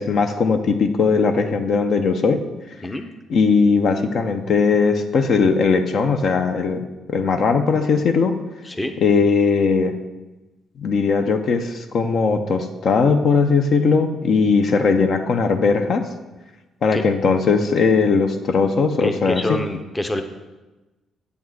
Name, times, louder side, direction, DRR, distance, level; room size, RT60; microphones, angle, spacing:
voice 1, 0.0-2.4 3.3-6.8 7.1-8.3 9.0-9.9 10.8-16.0 16.8-19.6, left 5 dB, 60° left, 7 dB, 0.6 m, -19 dB
voice 2, 19.0-20.2, left 1 dB, 15° left, 7 dB, 0.7 m, -26 dB
8.1 x 3.6 x 6.3 m, 1.1 s
cardioid pair, 90°, 0 cm